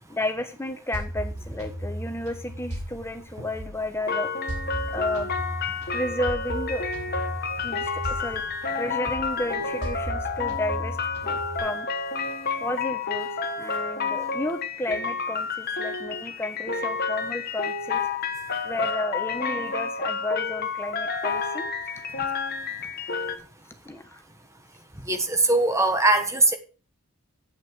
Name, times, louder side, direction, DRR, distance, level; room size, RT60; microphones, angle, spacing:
voice 1, 0.1-4.3 4.9-5.3 5.8-6.8 7.6-8.4 8.8-11.9 12.6-13.3 13.6-18.1 18.6-21.7 22.2-22.3 22.8-22.9 23.8-24.2, left 1 dB, 10° left, 1.1 m, -32 dB
sound 1, 0.9-4.0 4.5-8.9 9.1-11.6, right 1 dB, 80° right, 4.3 m, -36 dB
sound 2, 4.1-23.4, left 5 dB, 45° left, 1.3 m, -30 dB
voice 2, 25.1-26.5, right 2 dB, 15° right, 1.3 m, -21 dB
8.4 x 8.4 x 6.2 m
head